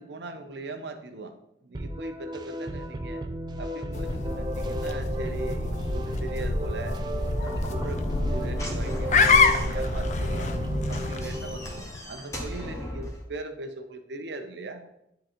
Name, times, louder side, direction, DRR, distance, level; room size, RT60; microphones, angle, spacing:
voice 1, 0.0-1.4 1.6-3.2 3.6-7.0 7.4-8.0 8.3-10.6 10.9-14.9, right 3 dB, 75° right, 7 dB, 0.7 m, -40 dB
sound 1, 1.7-11.8, right 1 dB, 25° right, 0.4 m, -35 dB
sound 2, 3.9-12.0, left 4 dB, 40° left, 0.4 m, -27 dB
Slam / Knock, 7.4-13.2, left 1 dB, 15° left, 1.0 m, -39 dB
10.0 x 3.8 x 3.0 m, 0.79 s
head